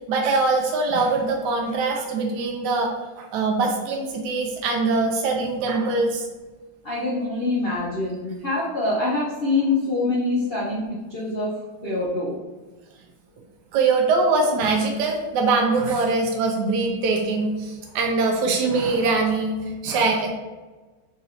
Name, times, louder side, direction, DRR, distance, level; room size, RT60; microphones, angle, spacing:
voice 1, 0.1-6.3 13.7-20.3, right 3 dB, 75° right, 1 dB, 1.0 m, -22 dB
voice 2, 6.8-11.5 11.8-12.3, left 2 dB, 85° left, -7 dB, 0.5 m, -25 dB
3.9 x 2.6 x 4.2 m, 1.2 s
omnidirectional pair, 2.2 m